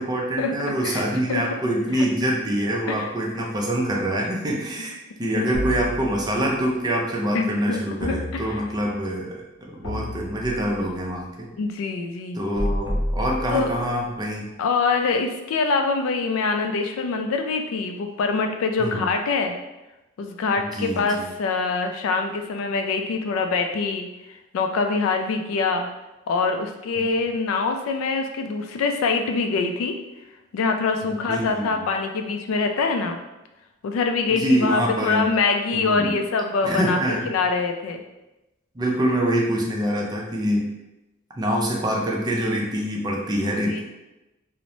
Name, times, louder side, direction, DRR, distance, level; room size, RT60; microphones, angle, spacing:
voice 1, 0.0-9.3 9.7-11.5 12.3-14.5 18.8-19.0 20.6-21.3 27.0-27.1 31.0-31.8 34.3-35.3 35.7-36.2 36.6-37.4 38.7-40.7 41.4-43.8, equal, 20° right, -1 dB, 0.4 m, -25 dB
sound 1, 5.5-6.6 8.0-9.0 9.8-10.9 12.6-14.0, equal, 60° left, 0.8 m, -30 dB
voice 2, 7.3-8.6 11.6-12.4 13.5-13.7 14.6-19.5 20.2-24.1 24.5-25.9 26.3-30.0 30.5-33.2 33.8-37.0 37.3-38.0 43.4-43.8, left 4 dB, 85° left, 5 dB, 0.3 m, -24 dB
3.0 x 2.0 x 2.6 m, 1.0 s
head